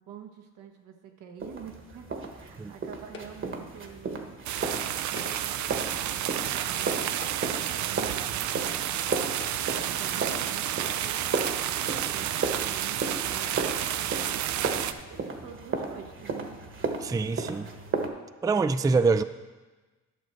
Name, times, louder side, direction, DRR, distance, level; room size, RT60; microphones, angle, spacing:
voice 1, 0.0-4.4 5.1-9.4 9.9-16.6, right 8 dB, 85° right, 3 dB, 1.3 m, -47 dB
sound 1, 1.4-18.1, right 4 dB, 40° right, 1.3 m, -35 dB
sound 2, 3.1-3.7 5.0-5.7 6.5-6.6 7.1-7.8 8.7-8.8 9.3-9.9, left 3 dB, 40° left, 1.2 m, -47 dB
sound 3, 4.5-14.9, right 11 dB, 70° right, 0.5 m, -30 dB
voice 2, 17.0-17.7 18.4-19.2, right 4 dB, 10° right, 12 dB, 0.3 m, -24 dB
12.0 x 6.4 x 4.5 m, 1.2 s
cardioid pair, 90°, 30 cm